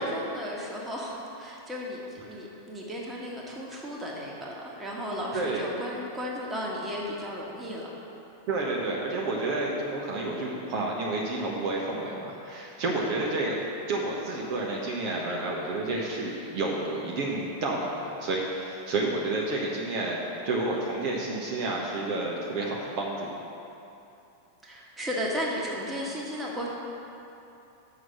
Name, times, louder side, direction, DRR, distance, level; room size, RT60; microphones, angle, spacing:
voice 1, 0.0-7.9 24.6-26.7, equal, 10° right, -4 dB, 1.7 m, -34 dB
voice 2, 5.3-5.6 8.5-13.6 13.9-20.2 20.4-23.3, right 2 dB, 45° right, -3 dB, 1.2 m, -30 dB
7.3 x 6.2 x 7.2 m, 2.8 s
figure-of-eight pair, 90°, 0 cm